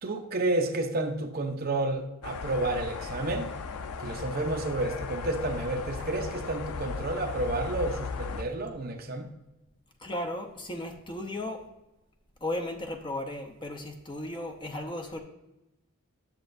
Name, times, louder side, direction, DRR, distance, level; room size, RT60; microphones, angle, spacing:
voice 1, 0.0-3.5 4.0-9.3, right 2 dB, 40° right, 3 dB, 0.8 m, -30 dB
sound 1, 2.2-8.4, left 5 dB, 85° left, 0.5 m, -36 dB
voice 2, 10.0-11.7 12.4-15.2, left 1 dB, 20° left, 4 dB, 0.8 m, -35 dB
10.5 x 6.7 x 2.6 m, 0.94 s
head